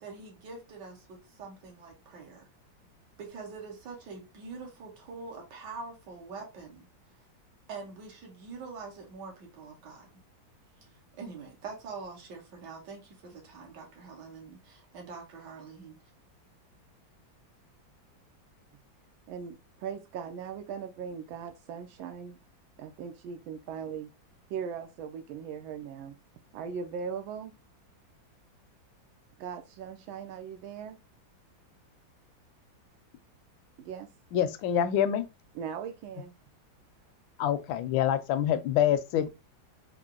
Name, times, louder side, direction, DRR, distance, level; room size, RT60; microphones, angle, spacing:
voice 1, 0.0-2.5 3.2-6.9 7.7-10.1 10.8-16.0, right 4 dB, 65° right, 1.8 m, -44 dB
voice 2, 19.3-22.4 22.8-24.1 24.5-26.1 26.5-27.5 29.4-31.0 33.8-34.1 35.5-36.4, right 7 dB, 85° right, 1.4 m, -39 dB
voice 3, 34.3-35.2 37.4-39.3, left 10 dB, 80° left, 1.3 m, -26 dB
4.4 x 2.0 x 3.7 m
omnidirectional pair, 2.1 m